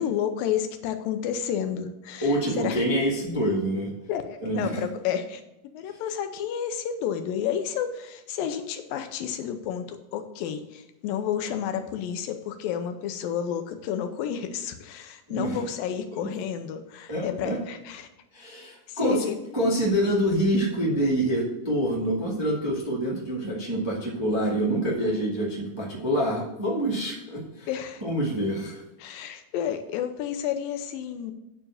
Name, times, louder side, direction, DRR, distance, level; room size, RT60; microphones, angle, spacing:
voice 1, 0.0-2.8 4.1-5.4 5.7-18.1 18.9-19.4 27.7-28.0 29.0-31.3, left 9 dB, 85° left, 8 dB, 2.4 m, -31 dB
voice 2, 2.2-3.9 4.4-4.8 15.3-15.6 16.2-16.3 17.1-17.6 18.3-19.2 19.5-27.7 28.0-28.8, right 1 dB, 20° right, -4 dB, 0.7 m, -26 dB
8.8 x 4.7 x 7.2 m, 0.92 s
omnidirectional pair, 4.1 m